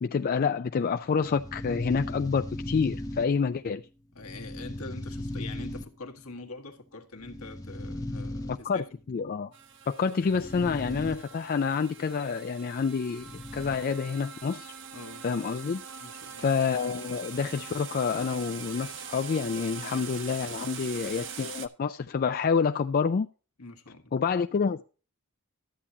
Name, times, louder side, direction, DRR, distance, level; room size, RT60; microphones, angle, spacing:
voice 1, 0.0-3.8 8.5-9.5 9.9-14.7 15.2-15.8 16.4-23.3 24.1-24.8, left 5 dB, 40° left, 0.3 m, -28 dB
sound 1, 0.9-3.7 4.2-6.3 7.2-8.9 10.2-11.2 11.5-11.6 13.2-13.9, left 1 dB, 15° left, 0.9 m, -37 dB
voice 2, 4.1-8.9 14.9-15.2 16.0-16.5 19.7-19.9 20.7-21.2 23.6-24.1, left 3 dB, 70° left, 1.5 m, -44 dB
sound 2, 9.5-21.7, right 7 dB, 55° right, 0.9 m, -43 dB
13.0 x 8.5 x 2.7 m
head